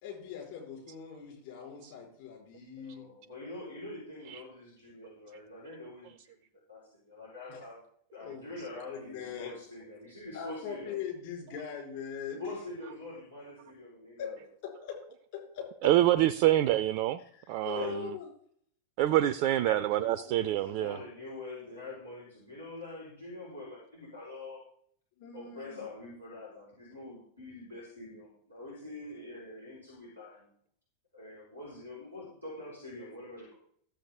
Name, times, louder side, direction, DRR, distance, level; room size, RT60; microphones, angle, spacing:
voice 1, 0.0-3.1 7.5-7.6 8.2-9.6 10.3-12.5 14.2-14.3 14.6-15.0 15.3-15.7 17.3-18.3 25.2-25.9, left 7 dB, 50° left, -1 dB, 4.6 m, -41 dB
voice 2, 2.8-6.4 6.7-6.8 7.1-7.8 8.1-11.0 12.4-14.4 17.7-17.9 19.6-24.6 25.3-30.5 31.1-33.6, left 2 dB, 90° left, -8 dB, 4.3 m, -45 dB
voice 3, 15.8-17.2 17.5-17.9 19.0-21.0, right 13 dB, 45° right, 13 dB, 0.4 m, -26 dB
14.0 x 7.5 x 3.6 m, 0.63 s
figure-of-eight pair, 90°, 0 cm